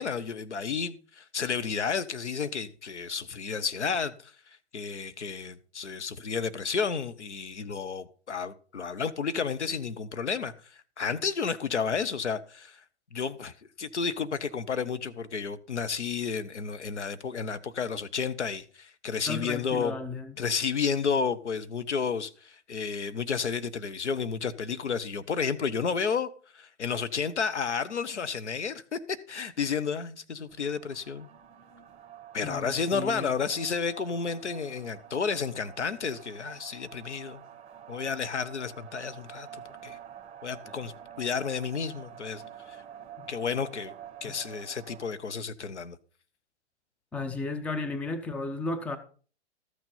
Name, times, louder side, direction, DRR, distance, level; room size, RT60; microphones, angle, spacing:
voice 1, 0.0-4.3 4.7-12.8 13.1-20.0 20.4-31.3 32.3-37.4 37.9-40.0 40.4-42.8 43.3-43.9 44.2-46.0, left 6 dB, 80° left, 1.0 m, -31 dB
voice 2, 19.3-20.3 32.4-33.3 40.6-40.7 44.2-44.3 47.1-49.0, left 3 dB, 5° left, 0.6 m, -34 dB
sound 1, 30.5-45.1, right 10 dB, 15° right, 1.5 m, -48 dB
13.5 x 6.3 x 5.5 m
figure-of-eight pair, 120°, 34 cm